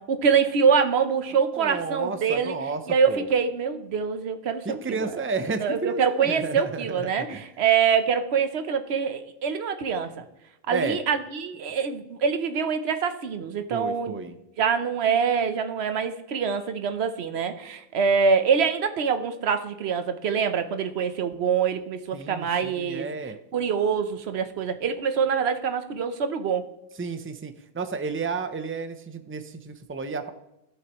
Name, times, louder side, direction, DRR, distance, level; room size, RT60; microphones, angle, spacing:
voice 1, 0.0-2.6 2.9-5.1 5.6-10.2 10.7-14.2 14.6-23.1 23.5-26.7, right 6 dB, 90° right, 9 dB, 1.1 m, -25 dB
voice 2, 1.6-2.8 3.1-3.3 4.6-7.4 10.7-11.0 13.7-14.3 22.1-23.3 27.0-30.3, right 4 dB, 15° right, 9 dB, 0.5 m, -32 dB
16.0 x 6.5 x 3.0 m, 0.89 s
omnidirectional pair, 1.0 m